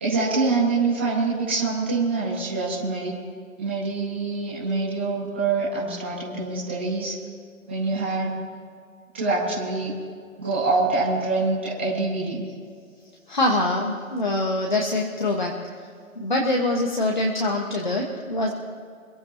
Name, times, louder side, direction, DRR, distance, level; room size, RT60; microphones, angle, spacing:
voice 1, 0.0-3.1 3.6-7.1 7.7-8.4 9.1-9.9 10.4-12.4, right 3 dB, 10° right, -9 dB, 1.7 m, -25 dB
voice 2, 13.3-15.6 16.1-18.5, left 2 dB, 35° left, 0 dB, 1.5 m, -24 dB
28.0 x 15.0 x 3.0 m, 2.2 s
figure-of-eight pair, 175°, 42 cm